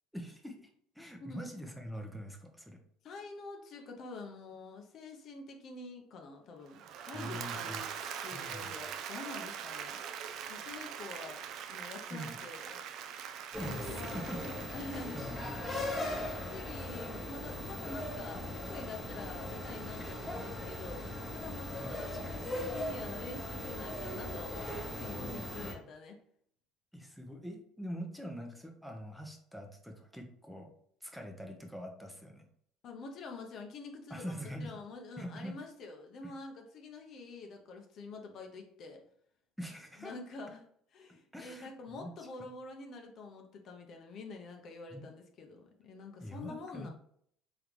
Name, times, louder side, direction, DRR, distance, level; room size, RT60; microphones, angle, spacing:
voice 1, 0.1-0.7 0.9-2.8 7.1-7.8 8.3-8.7 12.1-12.4 13.6-14.5 15.1-16.2 20.0-20.4 21.8-21.9 25.0-25.5 26.9-30.7 31.0-32.4 34.1-34.7 35.2-35.6 39.6-40.1 41.1-42.1 42.4-42.5 44.9-45.1 46.2-46.9, equal, ahead, 2 dB, 0.8 m, -44 dB
voice 2, 3.0-7.9 8.2-10.0 10.5-11.4 11.7-12.8 13.9-14.2 14.7-15.2 15.8-16.2 16.5-21.1 21.3-26.2 32.8-34.3 34.6-39.0 40.0-40.7 40.9-46.9, left 3 dB, 55° left, 2 dB, 0.8 m, -47 dB
Applause / Crowd, 6.7-15.8, right 8 dB, 60° right, 0.4 m, -42 dB
sound 1, 13.5-25.7, left 1 dB, 15° left, 1.2 m, -39 dB
3.7 x 3.5 x 3.1 m, 0.65 s
supercardioid pair, 95°, 0 cm